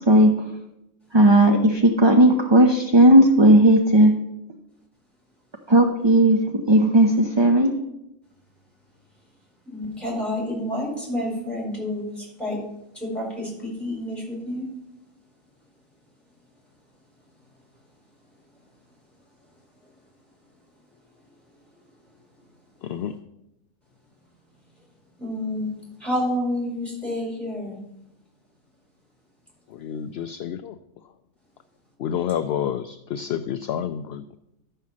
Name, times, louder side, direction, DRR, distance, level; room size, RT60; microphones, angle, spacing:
voice 1, 1.1-4.1 5.7-7.7, right 1 dB, 30° right, 3 dB, 0.6 m, -15 dB
voice 2, 9.6-12.6 12.9-14.7 25.2-25.7 26.0-27.8, left 1 dB, ahead, -3 dB, 4.9 m, -29 dB
voice 3, 22.8-23.2 29.7-30.8 32.0-34.4, left 9 dB, 65° left, 10 dB, 0.6 m, -29 dB
12.0 x 5.7 x 7.3 m, 0.88 s
omnidirectional pair, 1.4 m